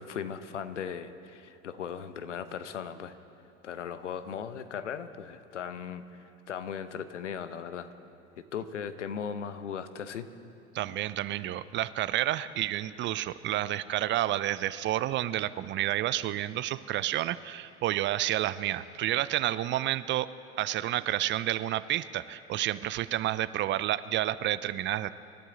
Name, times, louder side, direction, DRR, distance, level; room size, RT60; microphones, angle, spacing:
voice 1, 0.0-3.1 3.6-7.9 8.5-10.3, left 7 dB, 85° left, 11 dB, 0.8 m, -38 dB
voice 2, 10.7-20.3 20.6-25.1, right 13 dB, 35° right, 16 dB, 0.5 m, -30 dB
26.5 x 12.0 x 3.8 m, 2.8 s
hypercardioid pair, 85°, 35 cm